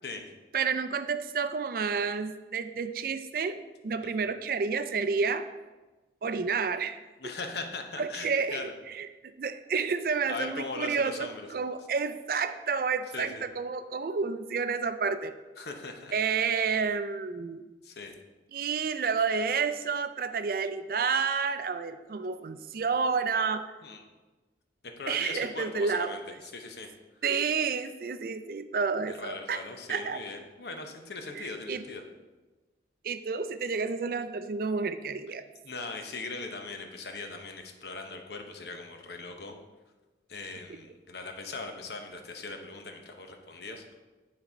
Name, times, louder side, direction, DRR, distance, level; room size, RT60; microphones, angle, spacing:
voice 1, 0.5-5.4 6.2-7.0 8.0-8.7 8.9-9.1 9.4-15.3 16.1-17.6 18.5-23.6 25.1-26.1 27.2-29.6 29.9-30.2 31.3-31.8 33.0-35.4 40.7-40.8, right 5 dB, 55° right, 11 dB, 0.4 m, -30 dB
voice 2, 7.2-8.7 10.3-11.5 13.1-13.4 15.6-16.1 17.8-18.1 23.8-24.0 25.0-26.9 29.1-32.0 35.6-39.6 40.3-43.9, left 3 dB, 70° left, 4 dB, 0.8 m, -40 dB
9.6 x 4.2 x 4.3 m, 1.2 s
head